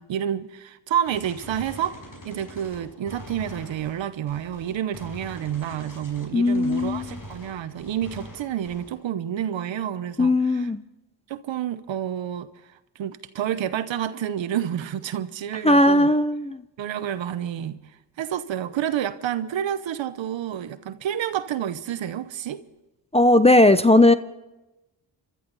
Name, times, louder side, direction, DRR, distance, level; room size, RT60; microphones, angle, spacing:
voice 1, 0.0-2.0 2.2-10.7 11.3-16.1 16.8-17.8 18.2-22.6, right 10 dB, 90° right, 0.9 m, -29 dB
Gunshot gunfire, 1.1-9.1, left 1 dB, 45° left, 5.4 m, -43 dB
voice 2, 6.3-7.1 10.2-10.8 15.6-16.6 23.1-24.1, left 1 dB, 15° left, 0.8 m, -17 dB
27.0 x 12.5 x 4.0 m
cardioid pair, 60°, 44 cm